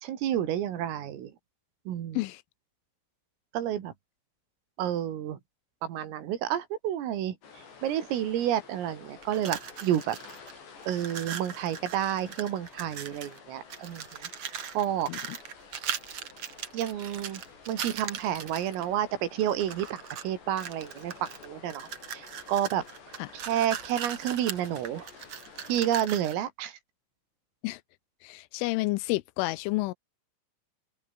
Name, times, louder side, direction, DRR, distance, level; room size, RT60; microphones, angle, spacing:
voice 1, 0.0-1.3 1.9-2.2 3.5-3.9 4.8-5.4 5.8-7.4 7.8-10.2 10.9-15.1 16.7-17.4 17.7-25.1 25.7-26.8, right 11 dB, 85° right, 5.3 m, -30 dB
sound 1, 7.4-26.0, left 5 dB, 60° left, 8.0 m, -51 dB
sound 2, 9.2-10.5 10.8-13.4 13.7-18.8 19.4-20.3 20.6-26.4, right 8 dB, 70° right, 1.4 m, -39 dB
voice 2, 28.2-29.9, left 20 dB, 85° left, 3.2 m, -30 dB
open air
omnidirectional pair, 5.8 m